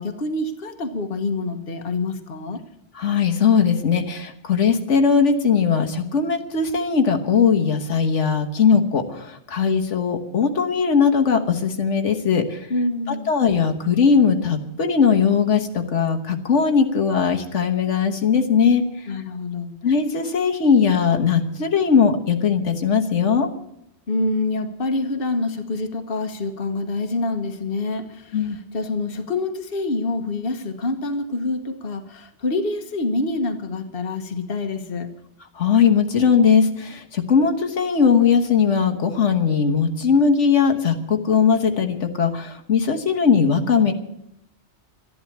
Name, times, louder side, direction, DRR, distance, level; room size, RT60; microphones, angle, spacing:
voice 1, 0.0-2.6 12.7-13.3 19.1-19.8 24.1-35.1, left 2 dB, 55° left, 6 dB, 1.5 m, -26 dB
voice 2, 2.9-12.7 13.3-18.8 19.8-23.5 28.3-28.6 35.5-43.9, left 6 dB, 90° left, 5 dB, 1.7 m, -19 dB
13.0 x 11.0 x 8.6 m, 0.78 s
omnidirectional pair, 1.2 m